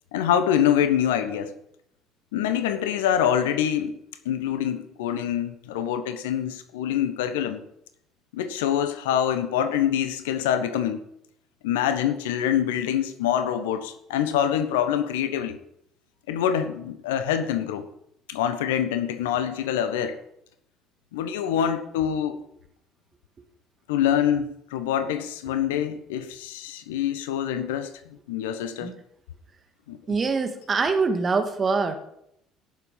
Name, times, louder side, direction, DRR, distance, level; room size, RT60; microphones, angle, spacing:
voice 1, 0.1-1.5 2.3-4.0 4.2-7.6 8.3-11.0 11.6-15.6 16.3-17.8 18.3-20.2 21.1-22.4 23.9-28.9 29.9-30.2, left 9 dB, 75° left, 11 dB, 1.1 m, -25 dB
voice 2, 30.1-31.9, right 4 dB, 35° right, 6 dB, 2.2 m, -24 dB
17.5 x 7.4 x 5.8 m, 0.76 s
figure-of-eight pair, 55°, 0 cm